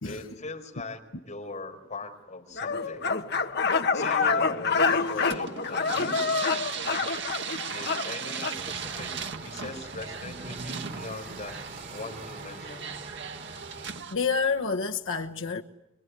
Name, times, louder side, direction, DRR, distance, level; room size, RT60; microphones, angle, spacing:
voice 1, 0.0-3.1 3.9-6.5 7.7-11.6 11.9-12.9, left 3 dB, 35° left, 4.9 m, -41 dB
sound 1, 2.6-8.6, left 4 dB, 55° left, 1.5 m, -27 dB
sound 2, 4.9-14.1, right 6 dB, 60° right, 1.9 m, -38 dB
sound 3, 8.5-14.0, right 3 dB, 45° right, 3.5 m, -43 dB
voice 2, 14.1-15.6, left 5 dB, 75° left, 1.2 m, -28 dB
24.5 x 24.0 x 9.7 m
head